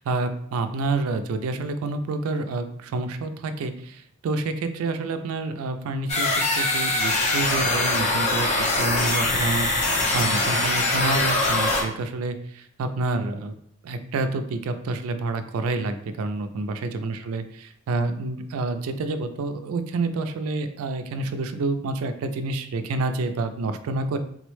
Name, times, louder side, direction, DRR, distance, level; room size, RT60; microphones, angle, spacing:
voice 1, 0.0-13.5 13.8-24.2, right 3 dB, 75° right, 8 dB, 0.3 m, -28 dB
sound 1, 6.1-11.8, left 2 dB, 30° left, 0.5 m, -23 dB
3.7 x 2.1 x 3.0 m, 0.65 s
head